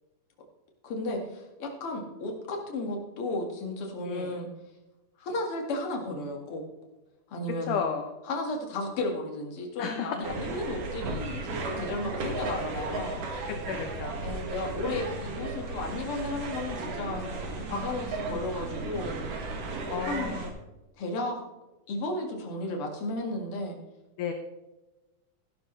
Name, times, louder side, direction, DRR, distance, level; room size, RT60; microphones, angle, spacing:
voice 1, 0.8-4.5 5.2-6.6 7.3-7.8 8.2-13.3 14.2-17.2 17.7-19.2 20.1-20.4 21.0-21.4 21.9-23.8, left 2 dB, 45° left, 1 dB, 2.5 m, -34 dB
voice 2, 7.7-8.1 9.8-10.2 13.7-14.2 14.8-15.1 17.1-17.7 19.9-20.5 24.2-24.3, left 7 dB, 70° left, 4 dB, 2.2 m, -33 dB
sound 1, 10.2-20.5, right 3 dB, 65° right, 3.3 m, -35 dB
14.5 x 11.5 x 3.3 m, 1.1 s
omnidirectional pair, 4.2 m